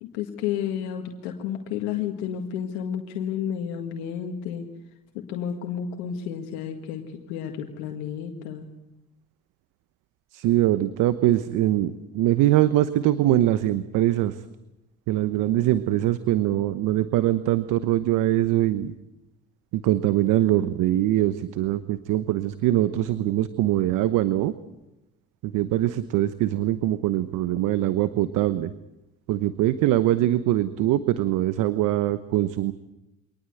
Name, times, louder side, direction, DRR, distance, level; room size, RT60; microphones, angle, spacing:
voice 1, 0.0-4.6 5.1-8.7, left 8 dB, 85° left, 3 dB, 1.9 m, -31 dB
voice 2, 10.3-14.4 15.1-18.9 19.7-24.5 25.4-28.7 29.3-32.7, right 14 dB, 70° right, 13 dB, 1.1 m, -23 dB
24.5 x 19.0 x 7.9 m, 0.94 s
hypercardioid pair, 65°, 32 cm